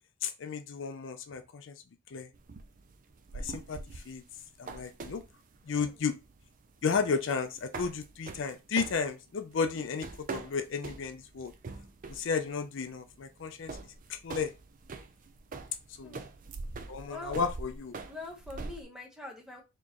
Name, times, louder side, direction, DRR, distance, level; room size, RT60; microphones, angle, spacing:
voice 1, 0.2-1.8 2.1-2.3 3.3-4.2 4.6-5.2 5.7-6.2 6.8-11.5 12.1-13.8 14.1-14.5 16.0-16.2 16.9-17.9, left 5 dB, 60° left, 9 dB, 0.4 m, -33 dB
sound 1, 2.3-18.9, right 3 dB, 40° right, 0.4 m, -44 dB
voice 2, 18.0-19.6, left 2 dB, 5° right, 0 dB, 0.9 m, -44 dB
4.4 x 3.0 x 2.9 m, 0.26 s
head